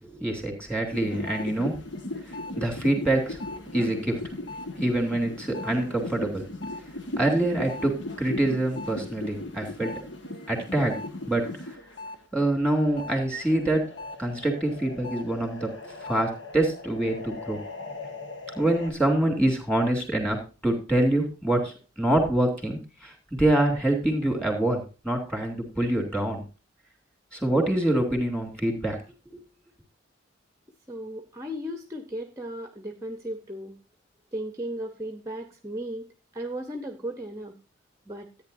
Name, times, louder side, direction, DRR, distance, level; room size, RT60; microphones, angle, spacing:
voice 1, 0.0-1.8 2.3-3.4 3.7-4.2 4.8-6.5 7.2-10.0 10.5-11.0 11.3-11.8 12.3-13.9 14.2-17.6 18.6-26.4 27.3-29.0 29.3-29.4, right 1 dB, 5° left, 1 dB, 2.8 m, -25 dB
sound 1, 0.9-12.2 12.5-18.9, left 2 dB, 65° left, 1.5 m, -38 dB
voice 2, 30.9-33.8 34.3-36.1 36.3-37.6 38.1-38.3, right 1 dB, 15° right, 6 dB, 0.8 m, -35 dB
14.0 x 9.2 x 2.6 m, 0.32 s
head